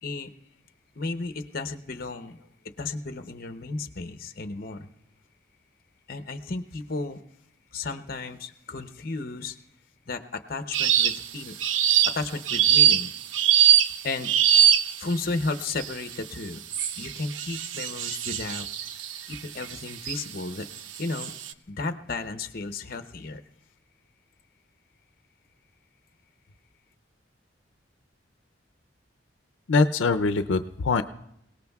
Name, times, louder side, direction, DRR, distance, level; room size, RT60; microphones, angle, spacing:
voice 1, 0.0-0.3 1.0-2.4 2.8-4.9 6.1-7.2 7.7-9.6 10.1-11.5 12.0-13.1 14.0-14.3 15.0-16.6 17.0-18.7 19.3-20.7 21.0-21.3 21.7-23.4, left 3 dB, 50° left, 8 dB, 0.8 m, -33 dB
sound 1, 10.7-11.3 11.6-15.1 15.8-16.1 16.7-20.2 20.8-21.5, right 10 dB, 90° right, 0.5 m, -22 dB
voice 2, 29.7-31.0, left 4 dB, 90° left, 10 dB, 0.5 m, -23 dB
28.0 x 18.0 x 2.3 m, 0.75 s
head